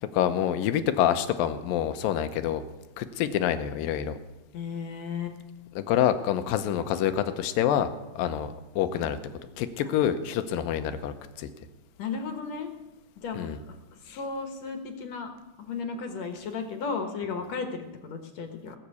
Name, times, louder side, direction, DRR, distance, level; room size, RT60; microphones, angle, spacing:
voice 1, 0.1-2.6 3.0-4.1 5.8-7.9 8.2-8.5 8.8-9.2 9.6-11.5 13.3-13.6, left 10 dB, 85° left, 10 dB, 2.6 m, -26 dB
voice 2, 4.5-5.4 8.9-9.2 9.8-9.9 12.0-12.7 13.2-15.3 15.6-18.8, left 5 dB, 60° left, 5 dB, 2.2 m, -35 dB
19.0 x 7.3 x 8.2 m, 1.1 s
omnidirectional pair, 3.9 m